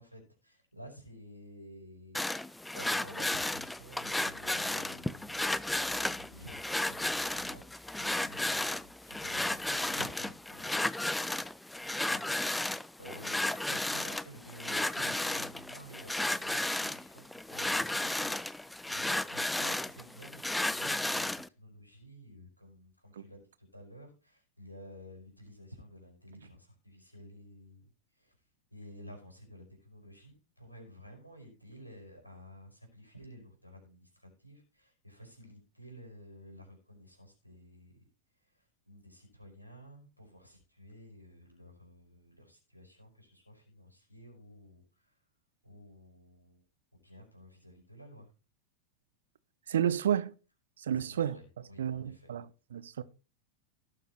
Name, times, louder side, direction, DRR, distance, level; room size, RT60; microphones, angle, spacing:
voice 1, 0.0-8.8 9.0-10.7 12.1-21.3 21.6-28.3 28.7-38.1 38.4-45.2 45.6-46.7 46.9-48.3 50.9-52.3 52.9-53.0, equal, 90° left, 5.2 m, -52 dB
sound 1, 2.1-21.5, left 1 dB, 5° left, 0.4 m, -33 dB
voice 2, 49.7-50.3 50.8-51.4 51.8-52.4 52.7-53.0, right 9 dB, 65° right, 0.8 m, -31 dB
18.0 x 6.8 x 3.1 m
figure-of-eight pair, 90°, 0 cm